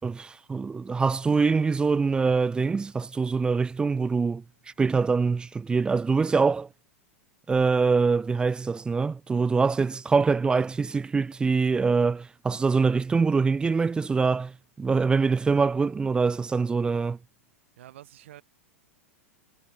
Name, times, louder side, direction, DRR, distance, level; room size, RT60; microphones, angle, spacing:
voice 1, 0.0-4.4 4.8-6.7 7.5-14.5 14.8-17.2, right 4 dB, 10° right, 0.5 m, -24 dB
voice 2, 17.8-18.4, right 13 dB, 55° right, 4.5 m, -47 dB
figure-of-eight pair, 95°, 8 cm